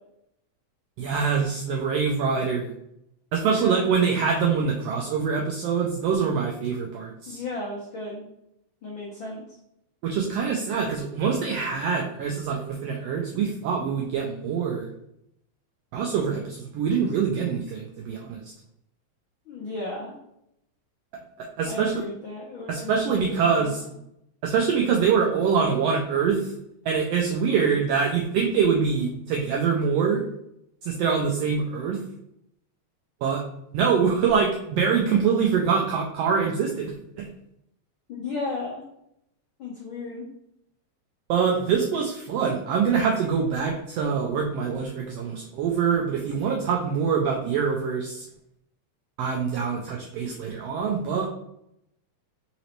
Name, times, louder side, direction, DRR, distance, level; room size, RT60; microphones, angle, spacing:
voice 1, 1.0-2.7 3.3-7.4 10.0-14.9 15.9-18.4 21.6-21.9 22.7-23.8 24.4-26.5 26.8-30.2 30.8-32.0 33.2-33.4 33.7-37.3 41.3-48.3 49.2-51.3, right 6 dB, 85° right, 0 dB, 1.4 m, -24 dB
voice 2, 3.4-3.9 7.3-8.2 8.8-9.4 19.5-20.1 21.6-23.9 38.1-38.8 39.6-40.3, left 2 dB, 80° left, -4 dB, 1.1 m, -34 dB
4.0 x 4.0 x 3.0 m, 0.79 s
omnidirectional pair, 3.3 m